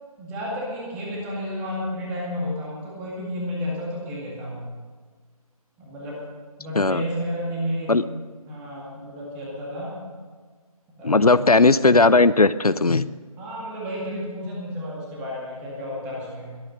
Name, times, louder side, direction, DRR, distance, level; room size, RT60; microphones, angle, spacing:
voice 1, 0.2-4.7 5.8-6.2 6.6-8.1 8.5-10.0 11.0-11.4 13.4-16.6, equal, 5° right, -4 dB, 2.1 m, -32 dB
voice 2, 11.0-13.1, left 3 dB, 80° left, 16 dB, 0.6 m, -17 dB
21.5 x 9.0 x 6.6 m, 1.5 s
figure-of-eight pair, 160°, 19 cm